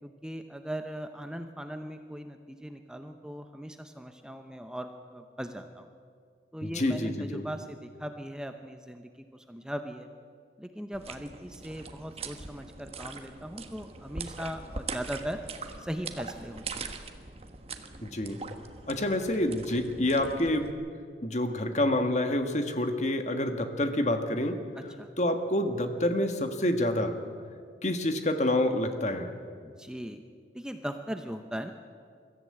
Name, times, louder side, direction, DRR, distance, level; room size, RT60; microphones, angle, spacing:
voice 1, 0.0-5.9 6.5-10.1 10.6-15.4 15.8-16.9 24.8-25.1 29.6-30.2 30.5-31.7, equal, 5° right, 6 dB, 0.7 m, -39 dB
voice 2, 6.6-7.4 18.0-18.4 18.9-20.7 21.2-24.6 25.2-27.2 27.8-29.3, left 1 dB, 40° left, 7 dB, 1.5 m, -28 dB
sound 1, 10.9-20.7, right 4 dB, 35° right, 1.2 m, -42 dB
22.5 x 14.5 x 8.7 m, 2.2 s
head